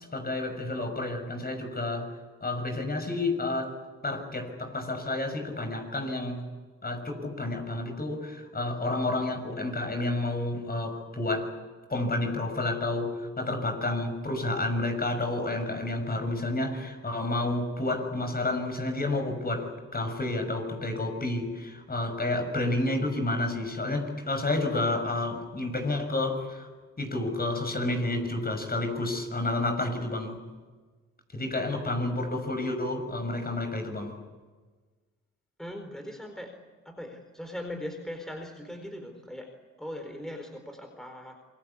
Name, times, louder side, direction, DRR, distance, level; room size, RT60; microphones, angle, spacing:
voice 1, 0.1-2.1 2.4-3.7 4.0-6.5 6.8-11.5 11.9-26.7 27.0-30.4 31.3-34.2, left 2 dB, 30° left, 6 dB, 6.4 m, -30 dB
voice 2, 35.6-36.5 36.8-39.5 39.8-41.4, left 1 dB, ahead, 4 dB, 4.3 m, -39 dB
27.5 x 21.0 x 8.5 m, 1.4 s
cardioid pair, 70°, 30 cm